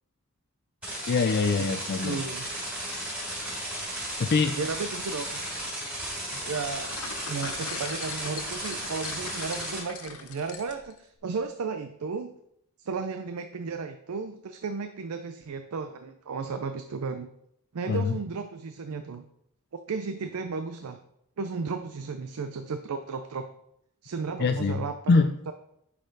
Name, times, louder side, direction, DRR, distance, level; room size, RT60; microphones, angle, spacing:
sound 1, 0.8-9.8, right 1 dB, 5° right, 3.1 m, -35 dB
voice 1, 1.1-2.2 2.9-3.0 4.2-4.6 17.9-18.2 24.4-24.8 25.1-25.3, left 4 dB, 45° left, 7 dB, 0.4 m, -24 dB
voice 2, 2.0-2.5 4.6-5.4 6.4-6.9 7.3-12.3 12.8-17.3 17.7-19.3 19.9-21.0 21.4-23.5 24.0-25.5, right 4 dB, 80° right, 8 dB, 0.5 m, -34 dB
sound 2, 6.3-11.0, left 6 dB, 75° left, 0.8 m, -41 dB
9.8 x 4.2 x 3.9 m, 0.74 s
head